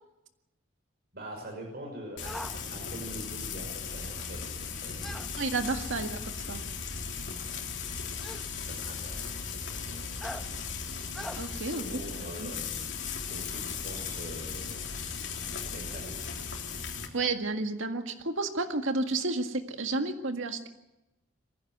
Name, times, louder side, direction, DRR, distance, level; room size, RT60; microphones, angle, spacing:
voice 1, 1.1-5.2 8.6-10.4 11.7-12.9 13.3-14.9 15.7-16.2, right 1 dB, 50° right, 1 dB, 5.9 m, -44 dB
Frying (food), 2.2-17.1, left 5 dB, 60° left, 3.5 m, -37 dB
sound 1, 2.2-2.6 5.0-5.3 6.5-6.6 8.2-8.5 10.2-10.4 11.1-11.4, equal, ahead, 0.9 m, -40 dB
voice 2, 5.4-6.6 11.4-11.8 12.4-12.5 17.1-20.7, right 3 dB, 75° right, 6 dB, 1.9 m, -31 dB
23.0 x 16.0 x 9.5 m, 0.96 s
head